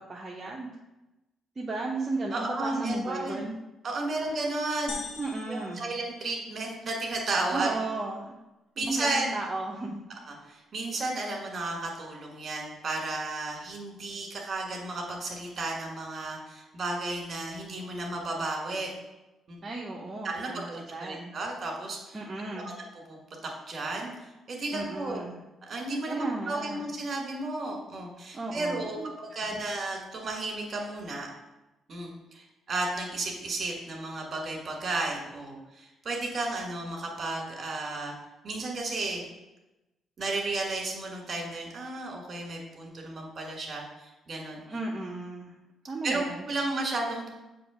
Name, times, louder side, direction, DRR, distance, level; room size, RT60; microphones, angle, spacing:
voice 1, 0.1-0.7 1.6-3.6 5.2-5.9 7.5-8.4 8.8-10.0 19.6-21.4 22.1-22.7 24.7-25.4 26.1-26.9 28.3-29.1 29.5-29.6 44.7-45.5 45.8-46.4, right 2 dB, 30° right, -3 dB, 0.8 m, -35 dB
voice 2, 2.3-3.4 3.8-5.0 5.5-7.7 8.8-9.3 10.3-18.9 19.5-19.6 20.2-22.2 22.5-22.6 23.1-23.2 23.7-25.2 25.7-31.3 31.9-38.1 38.4-39.2 40.2-44.6 46.0-47.3, right 2 dB, 45° right, 0 dB, 1.8 m, -33 dB
sound 1, 4.9-6.8, left 4 dB, 80° left, 0.9 m, -42 dB
6.9 x 3.1 x 5.0 m, 1.0 s
cardioid pair, 90°, 0 cm